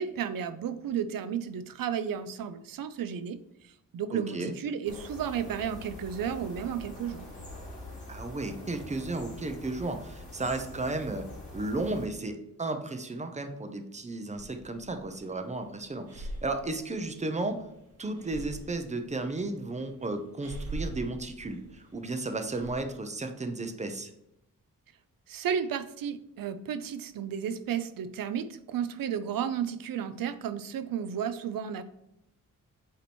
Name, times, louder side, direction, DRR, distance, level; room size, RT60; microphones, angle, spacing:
voice 1, 0.0-3.4 3.6-7.3 25.3-31.8, right 8 dB, 80° right, 12 dB, 0.6 m, -33 dB
voice 2, 4.1-4.5 8.1-11.3 11.5-17.6 18.0-24.1, right 2 dB, 20° right, 7 dB, 0.7 m, -34 dB
sound 1, 4.8-12.1, left 1 dB, 20° left, 1.9 m, -44 dB
Breathing, 14.3-22.8, right 1 dB, 45° right, 1.1 m, -44 dB
8.3 x 3.0 x 4.3 m, 0.82 s
wide cardioid pair, 120°, 33 cm